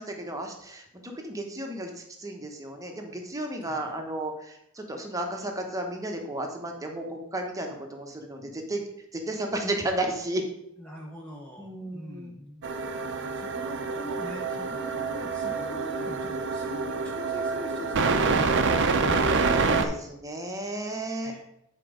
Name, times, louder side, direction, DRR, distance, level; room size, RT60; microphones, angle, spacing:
voice 1, 0.0-8.8 9.1-10.4 11.6-12.3 19.5-21.3, right 1 dB, 15° right, 3 dB, 1.0 m, -33 dB
voice 2, 3.6-4.1 10.8-12.7 13.1-19.2 21.2-21.4, equal, 5° left, -2 dB, 0.7 m, -43 dB
sound 1, 12.6-19.8, right 4 dB, 55° right, 0.7 m, -27 dB
8.4 x 4.5 x 5.1 m, 0.78 s
head